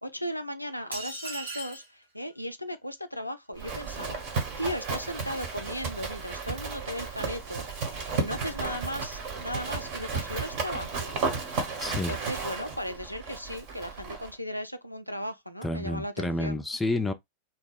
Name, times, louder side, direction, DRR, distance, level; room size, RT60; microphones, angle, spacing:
voice 1, 0.0-4.2 4.6-7.6 8.1-11.1 11.9-16.6, equal, 90° left, 0.3 m, -36 dB
sound 1, 0.9-1.9, right 2 dB, 75° right, 1.2 m, -37 dB
Livestock farm animals working animals, 3.6-14.3, right 4 dB, 50° right, 1.1 m, -34 dB
voice 2, 11.8-12.2 15.6-17.1, left 2 dB, 10° left, 0.4 m, -29 dB
2.8 x 2.1 x 3.5 m
figure-of-eight pair, 90°, 0 cm